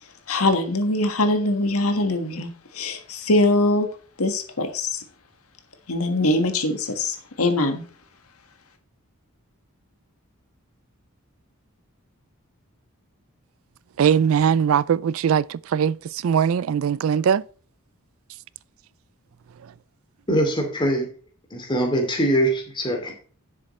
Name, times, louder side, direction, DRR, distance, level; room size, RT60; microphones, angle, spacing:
voice 1, 0.3-3.9 4.2-5.0 5.9-7.8, left 2 dB, 75° left, 1.6 m, -22 dB
voice 2, 14.0-17.4, right 7 dB, 65° right, 0.3 m, -20 dB
voice 3, 20.3-21.1 21.5-23.1, right 1 dB, 20° left, 2.6 m, -22 dB
10.5 x 7.4 x 3.2 m
head